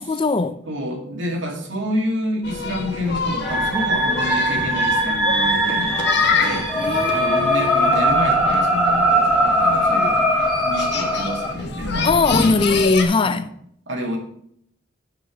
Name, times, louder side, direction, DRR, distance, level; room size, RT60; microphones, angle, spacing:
voice 1, 0.0-0.6 6.8-7.9 12.0-13.4, left 3 dB, 30° left, 0.4 m, -20 dB
voice 2, 0.7-6.0 6.3-6.8 7.1-10.3 10.6-12.7 13.2-13.4 13.9-14.2, equal, 80° right, 2.1 m, -28 dB
sound 1, 2.4-13.0, left 4 dB, 60° left, 1.4 m, -27 dB
sound 2, 3.4-11.5, equal, 5° left, 2.1 m, -20 dB
7.8 x 5.8 x 6.2 m
head